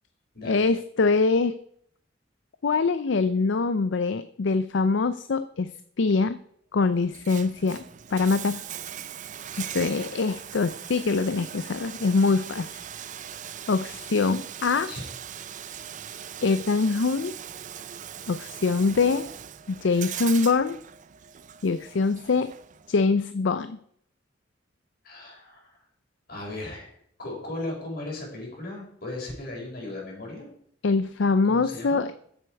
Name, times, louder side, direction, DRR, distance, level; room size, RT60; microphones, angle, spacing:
voice 1, 0.4-1.5 2.6-5.7 6.0-6.4 6.7-7.8 8.1-8.6 9.6-12.7 13.7-14.9 16.4-17.3 18.3-19.3 19.7-20.8 21.6-22.5 22.9-23.8 30.8-32.1, left 4 dB, 70° left, 12 dB, 0.5 m, -24 dB
Bathtub (filling or washing), 7.0-23.0, right 9 dB, 40° right, 0.5 m, -40 dB
voice 2, 14.6-15.0 25.0-25.8 26.3-26.9 27.2-30.5 31.5-32.0, left 2 dB, 55° left, -2 dB, 5.0 m, -37 dB
14.0 x 7.8 x 4.7 m, 0.67 s
head